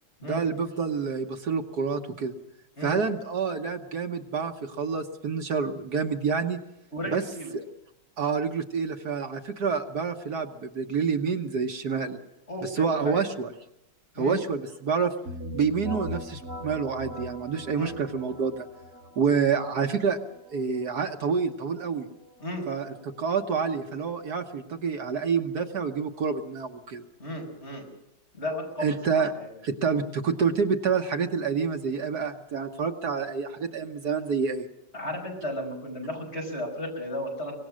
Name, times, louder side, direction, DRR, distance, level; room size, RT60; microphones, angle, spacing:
voice 1, 0.2-2.3 2.8-6.6 7.1-7.2 7.5-7.6 8.2-12.2 12.6-13.5 14.2-15.1 15.5-18.7 19.2-20.2 20.5-22.1 22.7-27.0 28.8-29.3 29.6-34.7, right 5 dB, 65° right, 5 dB, 1.7 m, -28 dB
voice 2, 6.9-7.5 11.9-12.0 12.5-13.2 14.1-14.4 17.7-18.0 22.4-22.7 27.2-27.9 28.3-29.5 34.9-37.6, left 1 dB, 35° left, 1 dB, 6.2 m, -34 dB
sound 1, 15.2-24.8, left 1 dB, 50° right, 4.6 m, -42 dB
24.5 x 19.5 x 6.3 m, 0.82 s
omnidirectional pair, 1.9 m